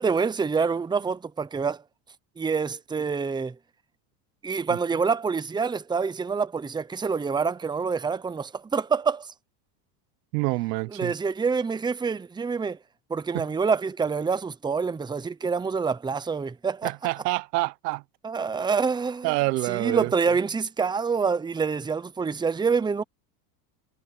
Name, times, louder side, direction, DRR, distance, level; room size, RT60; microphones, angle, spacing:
voice 1, 0.0-1.8 2.4-3.5 4.4-9.3 10.9-12.8 13.1-16.9 18.2-19.3 19.7-23.0, right 5 dB, 10° right, 0.9 m, -26 dB
voice 2, 10.3-11.1 13.3-13.5 16.8-18.0 19.2-20.1, right 23 dB, 80° right, 1.0 m, -27 dB
supercardioid pair, 130°, 48 cm